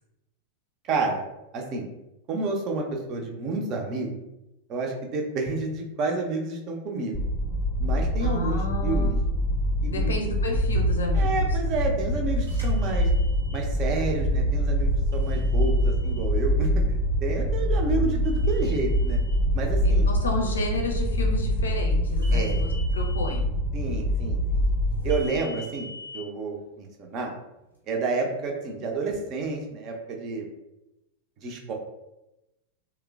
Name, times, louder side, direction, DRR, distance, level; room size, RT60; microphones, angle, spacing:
voice 1, 0.8-1.2 1.5-1.9 2.3-4.1 4.7-7.2 7.8-9.2 9.8-10.1 11.1-13.1 13.5-19.2 19.5-20.1 22.3-22.7 23.7-24.7 25.0-25.9 26.1-27.3 27.9-30.5 31.4-31.7, right 3 dB, 35° right, 1 dB, 0.5 m, -30 dB
sound 1, 7.1-25.1, equal, 15° left, 0.6 m, -24 dB
voice 2, 8.2-9.1 9.9-11.5 19.8-23.5, left 3 dB, 70° left, 1 dB, 0.5 m, -32 dB
sound 2, 12.4-13.6 15.1-16.2 18.2-19.3 22.2-23.3 25.1-26.2, left 1 dB, 85° right, 0.8 m, -44 dB
3.0 x 2.1 x 2.3 m, 0.94 s
figure-of-eight pair, 90°, 0 cm